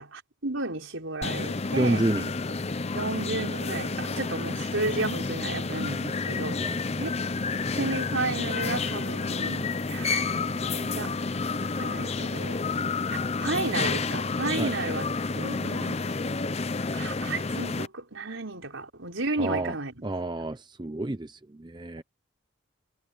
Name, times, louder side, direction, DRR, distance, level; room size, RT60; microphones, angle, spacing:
voice 1, 0.0-2.0 2.9-6.7 6.9-7.1 7.7-11.2 11.6-12.6 13.1-15.0 15.3-16.1 16.9-20.1, right 3 dB, 75° right, 5.0 m, -33 dB
sound 1, 1.2-17.9, left 4 dB, 30° left, 0.6 m, -30 dB
voice 2, 1.8-2.3 6.6-6.8 14.6-14.8 19.4-19.7 20.0-22.0, right 2 dB, 20° right, 0.7 m, -29 dB
head